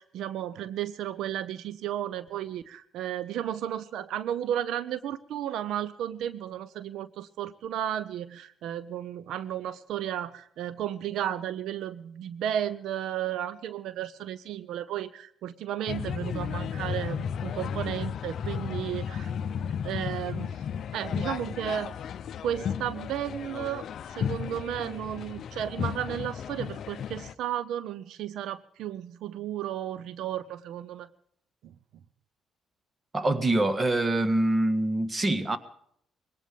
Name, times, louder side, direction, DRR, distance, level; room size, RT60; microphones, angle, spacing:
voice 1, 0.0-19.3 19.8-20.6 20.9-22.0 22.4-31.1 31.6-31.7, right 10 dB, 80° right, 0.6 m, -33 dB
sound 1, 15.9-27.3, left 8 dB, 65° left, 0.6 m, -34 dB
voice 2, 33.1-35.6, right 1 dB, 25° right, 1.6 m, -25 dB
21.5 x 18.0 x 3.5 m
cardioid pair, 90°, 0 cm